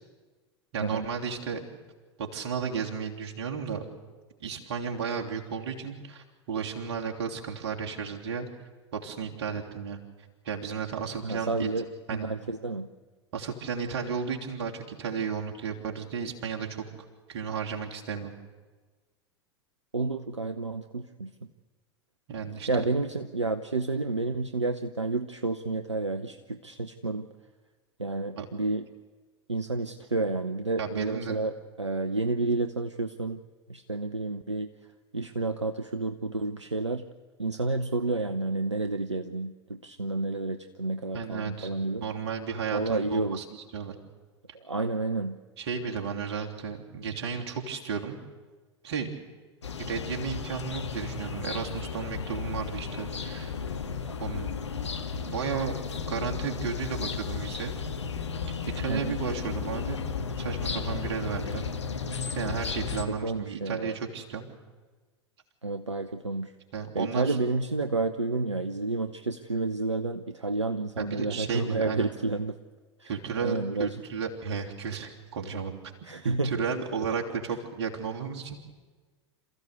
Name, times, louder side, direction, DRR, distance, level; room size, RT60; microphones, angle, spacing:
voice 1, 0.7-1.6 2.2-3.8 4.4-8.5 8.9-10.0 10.4-11.7 12.1-12.4 13.3-16.9 17.3-18.3 22.3-22.7 28.4-28.5 30.8-31.4 41.1-41.7 42.0-43.4 43.7-43.9 45.6-48.2 48.8-49.1 49.9-53.5 54.2-54.5 55.2-55.7 56.0-57.8 58.7-60.0 60.4-61.6 62.3-64.5 66.7-67.4 71.0-72.1 73.1-75.8 76.2-78.6, right 6 dB, 60° right, 1 dB, 3.2 m, -33 dB
voice 2, 11.2-11.8 12.1-12.9 19.9-21.3 22.7-27.3 28.0-28.8 29.5-33.4 33.7-34.7 35.1-37.1 37.4-42.1 42.7-43.4 44.5-45.4 58.9-59.2 63.1-64.0 65.6-66.5 66.9-72.6 73.0-73.1 73.4-74.0 76.0-76.5, right 3 dB, 90° right, 9 dB, 0.8 m, -30 dB
sound 1, 49.6-63.0, left 5 dB, 80° left, 1.6 m, -34 dB
28.0 x 14.5 x 8.3 m, 1.3 s
figure-of-eight pair, 85°, 15 cm